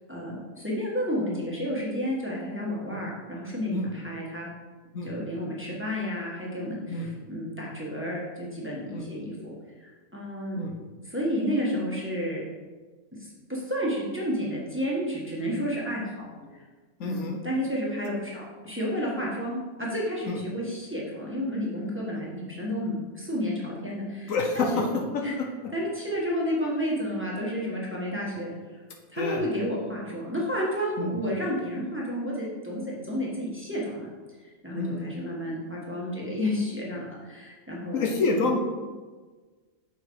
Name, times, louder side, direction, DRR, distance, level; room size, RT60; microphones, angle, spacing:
voice 1, 0.1-4.5 5.0-9.5 9.8-10.6 11.0-12.4 13.2-16.3 17.0-24.8 25.2-25.3 25.7-28.8 29.1-34.1 34.6-38.1, equal, 10° right, -5 dB, 1.3 m, -31 dB
voice 2, 17.0-17.4 20.3-20.4 24.3-24.8 29.2-29.4 31.0-31.1 34.8-35.1 37.9-38.6, left 3 dB, 70° left, 2 dB, 1.2 m, -27 dB
6.7 x 5.0 x 4.6 m, 1.4 s
omnidirectional pair, 1.5 m